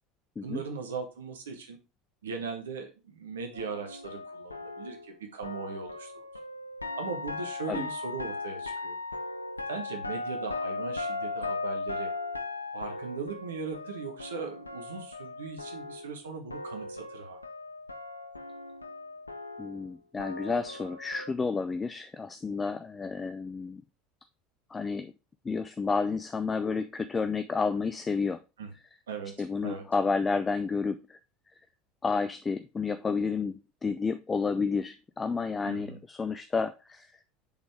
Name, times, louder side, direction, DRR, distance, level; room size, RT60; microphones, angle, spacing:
voice 1, 0.4-1.8 2.2-6.3 7.0-9.0 9.7-12.1 12.7-17.4 28.6-28.7 29.1-29.3 29.6-29.8 35.6-36.0, right 5 dB, 75° right, 5 dB, 1.3 m, -39 dB
sound 1, 3.5-16.2 16.5-21.3, left 3 dB, 90° left, 0.5 m, -38 dB
voice 2, 19.6-23.8 24.7-25.1 25.4-28.4 29.4-31.2 32.0-37.1, left 4 dB, 20° left, 10 dB, 0.4 m, -31 dB
7.1 x 4.2 x 3.3 m, 0.29 s
figure-of-eight pair, 70°, 0 cm